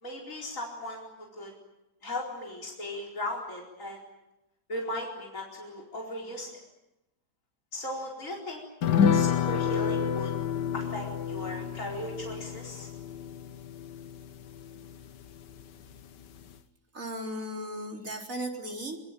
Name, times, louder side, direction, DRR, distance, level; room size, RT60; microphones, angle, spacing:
voice 1, 0.0-1.5 2.0-4.0 4.7-6.5 7.7-8.6 9.1-10.3 10.7-12.9, left 1 dB, 50° left, -1 dB, 4.8 m, -37 dB
sound 1, 8.8-15.6 15.9-16.0 16.3-16.5, left 7 dB, 90° left, 1.8 m, -29 dB
voice 2, 16.9-19.0, right 1 dB, 50° right, 1 dB, 4.4 m, -36 dB
25.0 x 23.0 x 9.0 m, 0.95 s
omnidirectional pair, 1.8 m